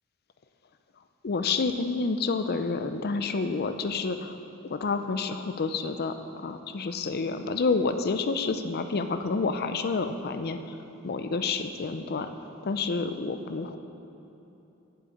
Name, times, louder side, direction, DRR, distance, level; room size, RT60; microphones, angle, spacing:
voice 1, 1.2-4.4 4.6-10.8 11.0-12.3 12.6-13.8, left 4 dB, 50° left, 8 dB, 0.5 m, -29 dB
7.9 x 7.5 x 8.4 m, 3.0 s
head